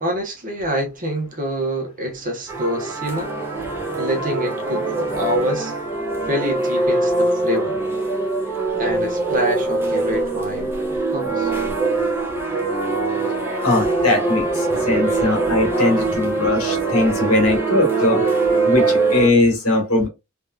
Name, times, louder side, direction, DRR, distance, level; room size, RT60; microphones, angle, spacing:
voice 1, 0.0-3.3 4.0-5.8 6.2-7.8 8.8-11.5, equal, 35° right, 1.1 m, -26 dB
sound 1, 2.5-19.3, right 3 dB, 10° right, 1.0 m, -22 dB
voice 2, 13.6-18.2 18.6-20.1, left 2 dB, 80° left, 1.7 m, -20 dB
3.4 x 3.0 x 2.4 m
head